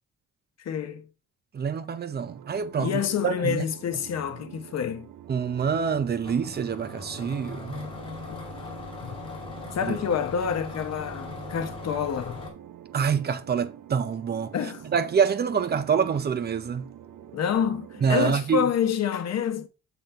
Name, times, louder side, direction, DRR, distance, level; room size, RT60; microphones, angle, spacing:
voice 1, 0.6-1.1 2.8-5.1 9.0-9.2 9.7-12.4 14.5-14.8 17.3-19.7, left 7 dB, 55° left, 0.9 m, -28 dB
voice 2, 1.5-3.6 5.3-7.8 9.8-10.0 12.9-14.5 14.9-16.9 18.0-18.7, right 6 dB, 35° right, 0.5 m, -26 dB
sound 1, 2.3-18.4, right 10 dB, 90° right, 0.7 m, -46 dB
sound 2, 6.2-12.5, left 3 dB, 15° left, 2.3 m, -39 dB
6.9 x 3.8 x 4.4 m
wide cardioid pair, 175°, 31 cm